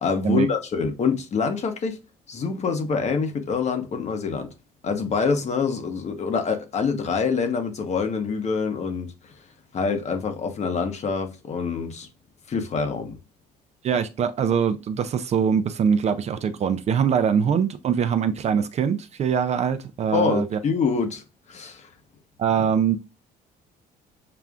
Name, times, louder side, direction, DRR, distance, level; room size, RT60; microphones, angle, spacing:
voice 1, 0.0-2.0 2.3-4.5 4.8-9.3 9.7-12.1 12.5-13.2 20.1-21.2 21.5-21.9, left 5 dB, 40° left, 0.9 m, -25 dB
voice 2, 13.8-20.6 22.4-23.0, right 7 dB, 40° right, 0.4 m, -23 dB
6.7 x 2.4 x 2.4 m
cardioid pair, 110°, 17 cm